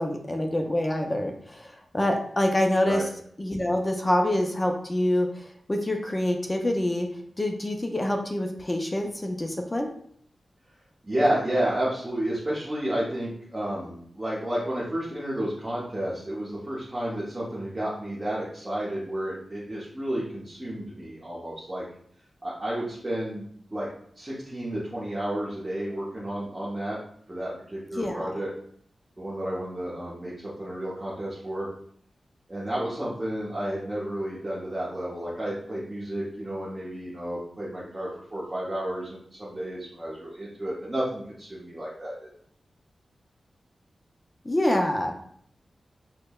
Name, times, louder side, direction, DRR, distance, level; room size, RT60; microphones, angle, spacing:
voice 1, 0.0-3.0 3.4-7.1 7.4-9.9 28.0-28.3 44.5-45.1, left 1 dB, 20° left, 3 dB, 0.3 m, -26 dB
voice 2, 11.0-21.8 22.4-23.9 24.2-27.0 27.3-28.5 29.2-31.7 32.5-42.3, right 1 dB, 20° right, -7 dB, 0.7 m, -31 dB
5.1 x 2.0 x 2.2 m, 0.64 s
wide cardioid pair, 145°, 0 cm